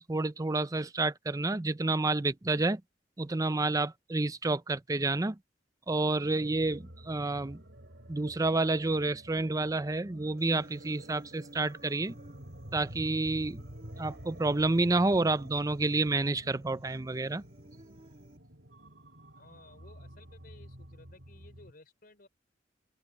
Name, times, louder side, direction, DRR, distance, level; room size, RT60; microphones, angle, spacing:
voice 1, 0.0-2.8 3.2-5.4 5.9-7.6 8.1-12.2 12.7-13.6 14.0-17.4, right 2 dB, 20° right, 0.5 m, -29 dB
sound 1, 6.2-21.7, equal, 75° right, 4.9 m, -50 dB
Human voice, 10.4-18.4, right 1 dB, 35° right, 2.7 m, -56 dB
voice 2, 19.3-22.3, left 2 dB, 55° left, 4.2 m, -57 dB
open air
head